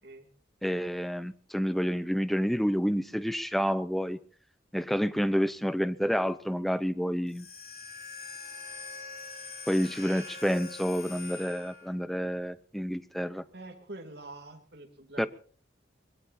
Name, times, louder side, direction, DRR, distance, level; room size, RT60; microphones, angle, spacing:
voice 1, 0.6-4.2 4.7-7.5 9.7-13.4 15.2-15.3, equal, ahead, 13 dB, 0.7 m, -29 dB
sound 1, 7.3-12.0, left 4 dB, 50° left, 5.2 m, -43 dB
voice 2, 13.5-15.3, right 2 dB, 60° right, 2 dB, 2.9 m, -45 dB
23.5 x 21.0 x 2.8 m, 0.43 s
head